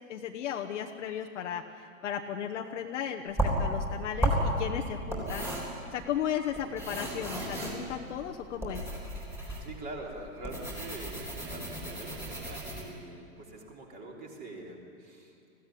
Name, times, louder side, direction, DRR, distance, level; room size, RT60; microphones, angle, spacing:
voice 1, 0.1-5.5 5.9-8.9, left 9 dB, 55° left, 2 dB, 1.2 m, -35 dB
sound 1, 3.3-12.8, right 1 dB, 5° right, 3.7 m, -33 dB
voice 2, 9.6-15.3, right 2 dB, 20° right, 0 dB, 3.2 m, -44 dB
20.5 x 16.0 x 10.0 m, 2.5 s
hypercardioid pair, 155°, 42 cm